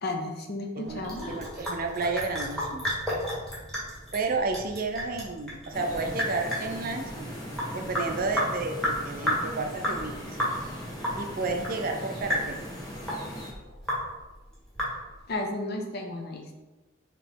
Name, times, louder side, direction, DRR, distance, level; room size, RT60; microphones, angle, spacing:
voice 1, 0.0-1.2 12.9-13.0 13.6-13.8 15.3-16.5, left 2 dB, 55° left, 3 dB, 0.7 m, -33 dB
voice 2, 0.7-2.9 4.1-7.0 7.7-10.4 11.2-12.6, right 3 dB, 45° right, 4 dB, 0.5 m, -31 dB
Sink (filling or washing) / Drip, 0.9-15.3, equal, 5° left, 1.4 m, -33 dB
sound 1, 5.7-13.5, equal, 20° left, 1.2 m, -39 dB
4.9 x 3.0 x 3.5 m, 1.1 s
head